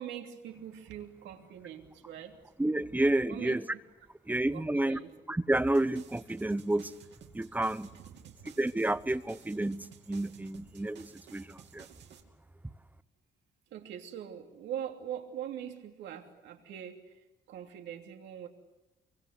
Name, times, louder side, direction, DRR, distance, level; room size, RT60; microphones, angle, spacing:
voice 1, 0.0-2.5 3.3-3.6 4.5-5.1 7.9-8.5 13.7-18.5, right 10 dB, 85° right, 4 dB, 3.0 m, -42 dB
voice 2, 2.6-3.6 4.3-5.0 5.3-6.9 7.3-7.9 8.6-11.9, right 1 dB, 10° right, 14 dB, 0.9 m, -30 dB
sound 1, 5.5-12.2, right 8 dB, 70° right, 2.9 m, -55 dB
24.5 x 24.0 x 8.2 m, 0.99 s
cardioid pair, 100°, 18 cm